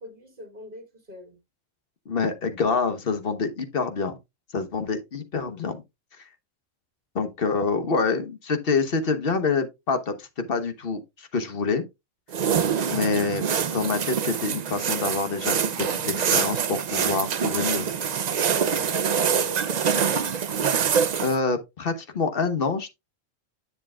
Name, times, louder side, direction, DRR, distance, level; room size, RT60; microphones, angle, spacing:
voice 1, 0.0-1.4 18.5-20.2, equal, 40° right, 2.3 m, -41 dB
voice 2, 2.1-4.2 4.5-5.8 6.2-6.3 7.1-11.8 12.9-17.9 21.2-22.9, left 4 dB, 45° left, 1.2 m, -26 dB
sound 1, 12.3-21.4, right 7 dB, 55° right, 0.4 m, -25 dB
9.9 x 6.8 x 2.3 m
omnidirectional pair, 1.4 m